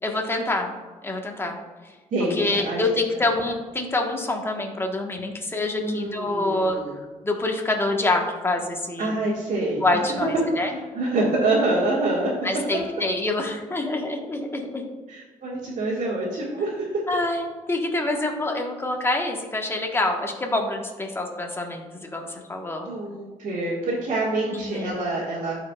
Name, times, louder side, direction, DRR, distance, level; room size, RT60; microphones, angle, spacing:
voice 1, 0.0-0.8 1.0-1.6 2.3-6.8 7.2-9.2 9.8-10.7 12.4-14.9 17.1-22.9 24.5-24.9, left 2 dB, 15° left, 1 dB, 1.2 m, -26 dB
voice 2, 2.1-2.8 5.8-6.9 9.0-9.8 10.6-12.3 15.1-16.8 22.8-25.7, right 2 dB, 70° right, -7 dB, 1.8 m, -26 dB
14.0 x 4.9 x 2.3 m, 1.3 s
cardioid pair, 95°, 14 cm